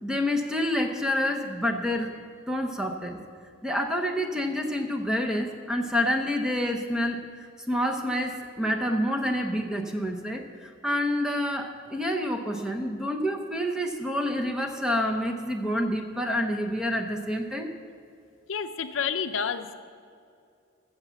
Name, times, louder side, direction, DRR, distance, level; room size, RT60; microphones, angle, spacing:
voice 1, 0.0-2.2 2.5-3.2 3.6-17.7, left 1 dB, 5° right, 2 dB, 0.8 m, -28 dB
voice 2, 18.5-19.7, left 6 dB, 70° left, 9 dB, 0.6 m, -29 dB
14.0 x 7.3 x 7.0 m, 2.3 s
head